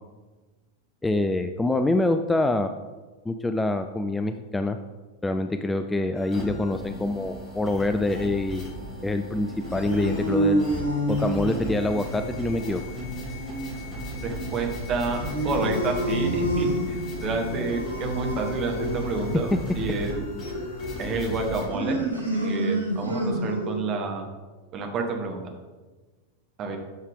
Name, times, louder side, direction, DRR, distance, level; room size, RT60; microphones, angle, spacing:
voice 1, 1.0-2.7 3.3-4.8 5.2-8.7 9.0-10.7 11.1-12.8, left 2 dB, 10° left, 8 dB, 0.4 m, -25 dB
sound 1, 6.1-21.7, equal, 30° left, 2.0 m, -37 dB
sound 2, 9.4-23.9, right 1 dB, 85° left, 2.3 m, -30 dB
voice 2, 14.2-15.2 15.4-20.2 21.0-22.0 22.3-24.3 24.7-25.5 26.6-26.8, right 3 dB, 30° right, 3 dB, 1.4 m, -29 dB
8.4 x 6.4 x 3.6 m, 1.3 s
figure-of-eight pair, 90°, 0 cm